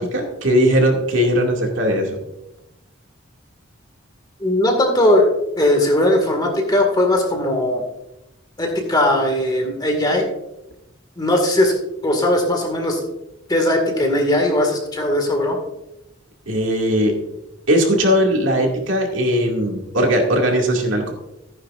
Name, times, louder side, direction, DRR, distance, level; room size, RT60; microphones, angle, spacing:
voice 1, 0.0-2.2 16.5-17.2 17.7-21.1, equal, 70° right, 1 dB, 2.3 m, -19 dB
voice 2, 4.4-7.8 8.6-10.3 11.2-11.7 12.0-13.0 13.5-15.6, left 1 dB, 20° left, 3 dB, 1.9 m, -18 dB
15.0 x 9.8 x 2.5 m, 0.89 s
head